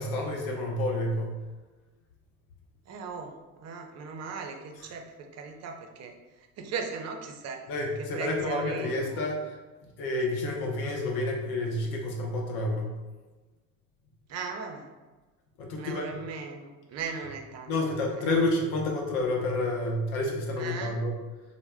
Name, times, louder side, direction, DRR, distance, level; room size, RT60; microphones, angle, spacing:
voice 1, 0.0-1.4 7.7-9.5 10.0-13.0 15.6-16.2 17.7-21.2, left 2 dB, 60° left, 0 dB, 0.7 m, -29 dB
voice 2, 2.9-7.6 8.0-9.2 14.3-14.9 15.8-18.0 20.6-21.0, right 5 dB, 40° right, 3 dB, 0.5 m, -38 dB
2.1 x 2.0 x 3.4 m, 1.2 s
hypercardioid pair, 65°, 41 cm